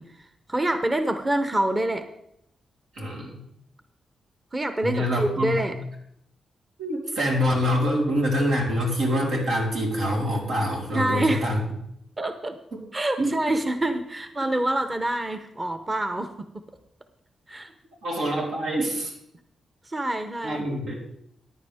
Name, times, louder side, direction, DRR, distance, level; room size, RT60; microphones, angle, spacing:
voice 1, 0.0-2.1 4.5-5.7 10.9-11.5 12.2-12.6 12.9-16.7 17.5-17.7 19.8-20.6, right 1 dB, 20° right, 8 dB, 0.8 m, -26 dB
voice 2, 2.9-3.4 4.8-5.7 6.8-11.6 12.7-12.8 13.2-13.3 18.0-19.1 20.4-21.0, equal, 90° right, -2 dB, 3.8 m, -25 dB
15.0 x 10.0 x 3.5 m, 0.74 s
cardioid pair, 115°, 0 cm